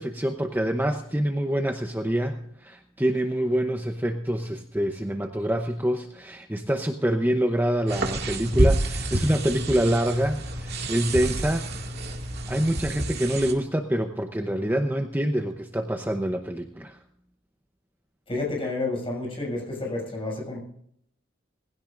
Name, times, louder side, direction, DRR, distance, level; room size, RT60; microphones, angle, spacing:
voice 1, 0.0-11.7 12.5-17.0, right 1 dB, 10° right, 0.8 m, -26 dB
sound 1, 7.9-13.5, right 1 dB, 55° right, 2.1 m, -28 dB
voice 2, 18.3-20.6, left 2 dB, 30° left, 6.7 m, -30 dB
20.0 x 16.5 x 2.5 m
head